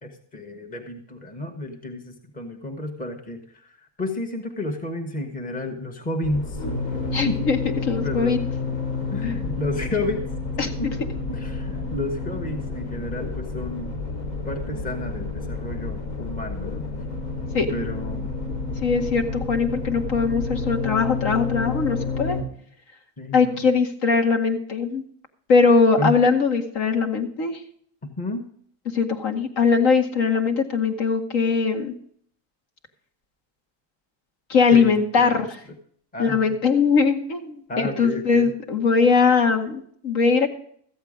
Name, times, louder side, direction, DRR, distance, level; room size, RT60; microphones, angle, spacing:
voice 1, 0.0-6.6 7.2-7.5 8.0-8.4 9.1-10.3 10.8-11.0 11.3-14.0 14.4-16.9 17.7-18.4 23.2-23.6 26.0-26.1 28.0-28.5 34.7-35.5 36.1-36.6 37.7-38.5, left 2 dB, 15° left, 4 dB, 1.4 m, -31 dB
sound 1, 6.2-22.4, left 4 dB, 80° left, 5.0 m, -30 dB
voice 2, 7.1-7.6 7.9-8.4 9.2-9.4 10.6-10.7 17.5-17.7 18.8-22.4 23.3-25.0 25.5-27.6 28.9-31.9 34.5-35.5 36.2-40.5, left 5 dB, 60° left, 4 dB, 2.0 m, -21 dB
14.0 x 8.1 x 5.2 m, 0.62 s
supercardioid pair, 135°, 49 cm